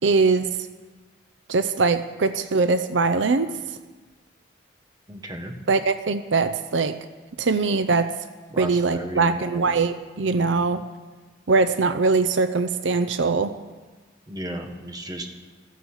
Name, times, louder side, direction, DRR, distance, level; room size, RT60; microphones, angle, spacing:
voice 1, 0.0-0.5 1.5-3.5 5.7-7.0 7.4-8.1 8.6-10.8 11.5-13.5, right 4 dB, 70° right, 11 dB, 0.7 m, -22 dB
voice 2, 5.1-5.5 8.5-9.7 10.3-10.6 14.3-15.3, right 1 dB, 20° right, 4 dB, 1.5 m, -34 dB
15.5 x 13.5 x 6.6 m, 1.3 s
head